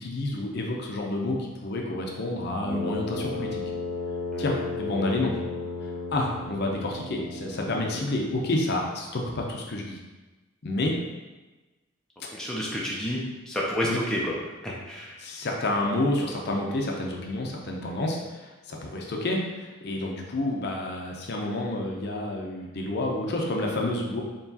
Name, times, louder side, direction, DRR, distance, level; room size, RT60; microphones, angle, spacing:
voice 1, 0.0-3.6 4.4-5.4 5.8-10.0 10.6-10.9 13.8-14.0 15.2-24.2, left 2 dB, 55° left, 0 dB, 0.6 m, -29 dB
Brass instrument, 2.6-8.5, left 3 dB, 35° right, 1.4 m, -34 dB
voice 2, 12.3-14.3 14.6-15.2, equal, 5° left, -5 dB, 0.5 m, -30 dB
4.6 x 3.0 x 2.7 m, 1.2 s
head